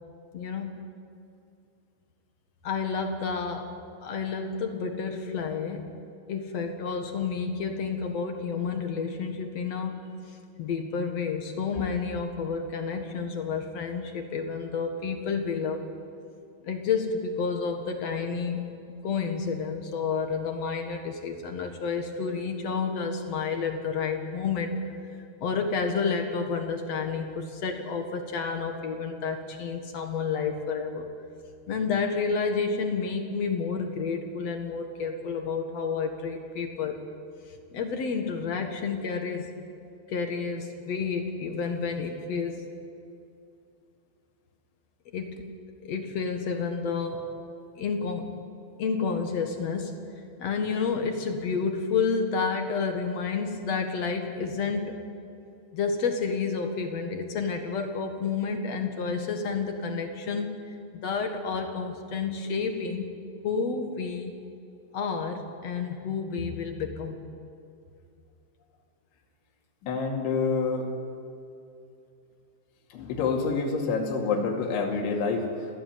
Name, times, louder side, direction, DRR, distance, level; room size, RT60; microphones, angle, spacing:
voice 1, 0.3-0.7 2.6-3.7 4.0-5.9 6.3-10.1 10.6-15.9 16.6-18.7 19.0-24.8 25.4-31.1 31.7-37.0 37.7-39.5 40.1-42.7 45.1-45.5 45.8-47.3 47.8-48.4 48.8-50.0 50.4-55.0 55.7-60.6 61.0-63.1 63.4-64.4 64.9-67.2, left 5 dB, 55° left, 5 dB, 1.9 m, -30 dB
voice 2, 69.8-70.8 72.9-75.5, left 4 dB, 80° left, 1 dB, 4.8 m, -27 dB
28.5 x 17.5 x 9.5 m, 2.6 s
omnidirectional pair, 5.3 m